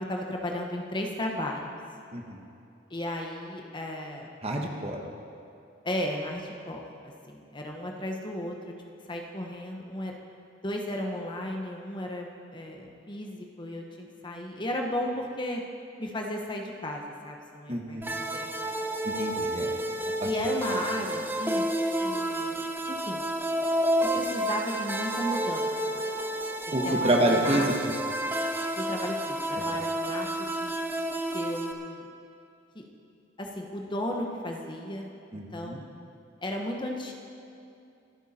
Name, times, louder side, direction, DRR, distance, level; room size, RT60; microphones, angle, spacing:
voice 1, 0.1-1.7 2.9-4.3 5.8-8.5 9.1-10.2 10.6-15.6 16.0-18.7 20.2-21.7 22.0-23.3 24.1-26.0 26.8-27.7 28.7-30.7 31.3-32.1 32.7-32.8 33.4-35.9 36.4-37.1, left 1 dB, 25° left, 1 dB, 1.2 m, -35 dB
voice 2, 2.1-2.4 4.4-5.0 17.7-18.0 19.0-19.7 20.2-20.3 20.7-20.8 26.7-27.7 29.5-29.6 35.3-35.8, right 1 dB, 35° right, 1 dB, 1.4 m, -28 dB
sound 1, 18.0-31.7, right 1 dB, 10° right, 0.8 m, -30 dB
24.5 x 9.2 x 4.4 m, 2.6 s
head